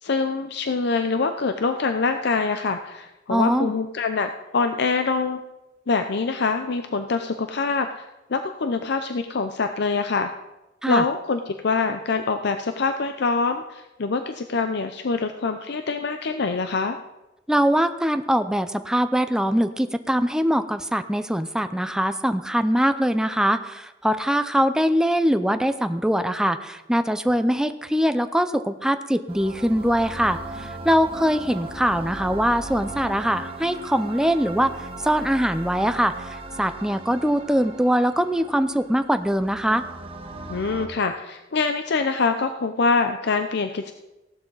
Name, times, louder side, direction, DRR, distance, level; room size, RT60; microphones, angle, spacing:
voice 1, 0.0-5.4 5.9-10.3 10.9-17.0 40.5-43.9, left 4 dB, 60° left, 8 dB, 0.6 m, -25 dB
voice 2, 3.3-3.7 10.8-11.0 17.5-34.7 35.0-36.3 36.6-39.8, equal, 5° right, 9 dB, 0.6 m, -22 dB
sound 1, 29.3-40.9, right 2 dB, 30° right, 1.4 m, -37 dB
16.0 x 11.5 x 4.0 m, 1.0 s
head